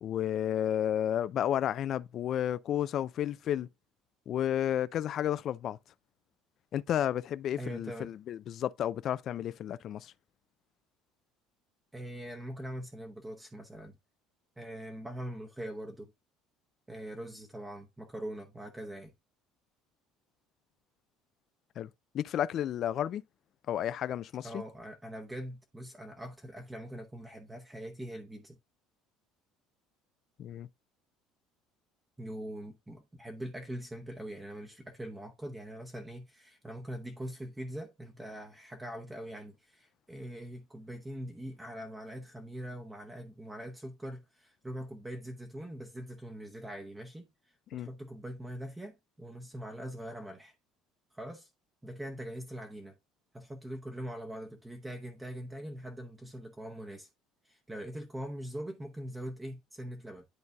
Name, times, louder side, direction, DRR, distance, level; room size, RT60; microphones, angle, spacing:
voice 1, 0.0-3.7 4.3-5.8 6.7-10.1 21.8-21.9 22.1-23.2 23.7-24.6 30.4-30.7 47.7-47.9, left 10 dB, 45° left, 0.3 m, -32 dB
voice 2, 7.6-8.1 11.9-14.0 14.6-16.1 16.9-19.1 24.4-28.6 32.2-50.5 51.1-51.5 51.8-53.0 53.3-57.1 57.4-60.3, equal, 10° right, 0.8 m, -42 dB
11.0 x 4.0 x 2.3 m
cardioid pair, 135°, 0 cm